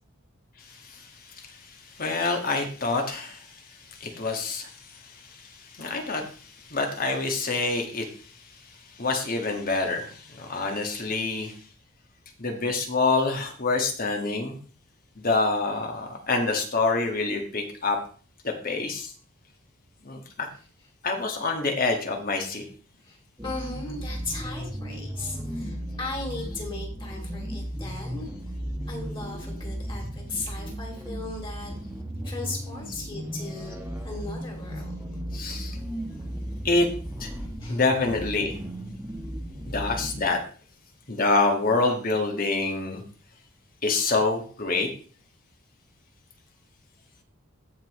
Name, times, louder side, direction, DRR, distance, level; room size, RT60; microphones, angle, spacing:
voice 1, 0.6-1.7 1.9-3.6 3.9-8.1 9.0-11.6 12.4-14.6 15.1-18.0 18.4-19.1 20.0-20.5 21.0-22.6 35.3-35.8 36.6-36.9 37.2-37.3 37.7-38.6 39.7-40.4 41.1-43.0 43.8-44.9, left 3 dB, 45° left, 3 dB, 1.9 m, -27 dB
voice 2, 23.0-28.3 28.9-31.7 32.2-35.1 37.3-37.8, left 3 dB, 25° left, 0 dB, 2.9 m, -37 dB
sound 1, 23.4-40.3, equal, 10° right, 1.3 m, -35 dB
16.0 x 5.6 x 3.2 m, 0.40 s
head